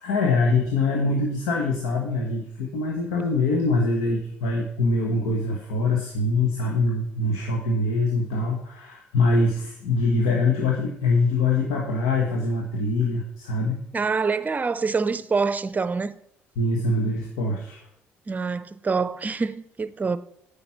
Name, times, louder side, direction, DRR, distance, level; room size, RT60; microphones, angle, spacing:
voice 1, 0.0-13.8 16.6-17.8, left 3 dB, 85° left, 1.2 m, -24 dB
voice 2, 13.9-16.1 18.3-20.2, right 4 dB, 30° right, 0.6 m, -25 dB
9.0 x 5.2 x 5.8 m
supercardioid pair, 60°, 6 cm